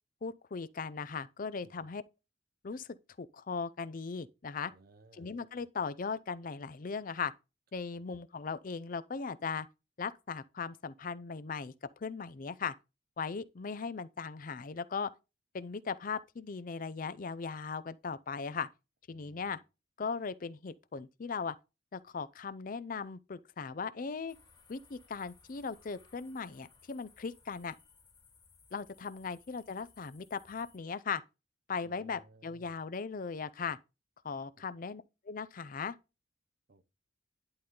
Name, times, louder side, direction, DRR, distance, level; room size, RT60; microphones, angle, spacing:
voice 1, 0.2-2.0 2.6-2.9 3.2-4.7 5.1-7.3 7.7-9.7 10.0-11.7 12.0-12.7 13.2-15.1 15.5-18.7 19.1-19.6 20.0-21.6 21.9-24.3 24.7-27.7 28.7-31.2 31.7-33.8 34.2-36.0, left 5 dB, 45° left, 0.5 m, -38 dB
voice 2, 4.7-5.3 7.9-8.0 19.1-19.6 31.8-32.8 34.6-34.7 36.7-36.9, right 3 dB, 50° right, 0.7 m, -60 dB
sound 1, 24.3-30.8, left 5 dB, 20° left, 2.3 m, -63 dB
11.0 x 3.8 x 3.7 m
head